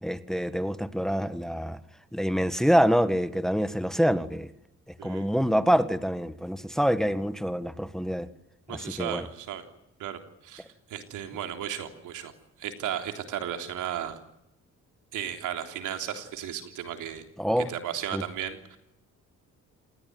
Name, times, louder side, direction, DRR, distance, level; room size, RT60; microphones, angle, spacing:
voice 1, 0.0-1.8 2.1-4.5 5.0-8.3 8.7-9.3 17.4-17.7 18.1-18.2, equal, ahead, 1.7 m, -26 dB
voice 2, 5.0-5.3 8.7-9.6 10.0-12.3 12.6-14.2 15.1-17.3 17.7-18.8, right 10 dB, 85° right, 3.5 m, -35 dB
28.0 x 20.5 x 9.5 m
cardioid pair, 90°, 30 cm